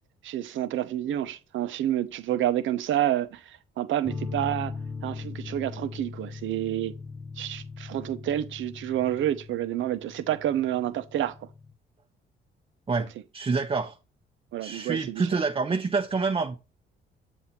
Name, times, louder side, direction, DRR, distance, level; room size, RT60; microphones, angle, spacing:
voice 1, 0.2-4.7 5.0-7.0 7.4-11.3 14.5-15.4, right 12 dB, 75° right, 0.8 m, -29 dB
sound 1, 4.0-11.7, left 4 dB, ahead, 1.4 m, -39 dB
voice 2, 13.3-13.9 14.6-16.5, right 4 dB, 30° right, 0.9 m, -27 dB
7.3 x 2.7 x 5.8 m
cardioid pair, 90°, 20 cm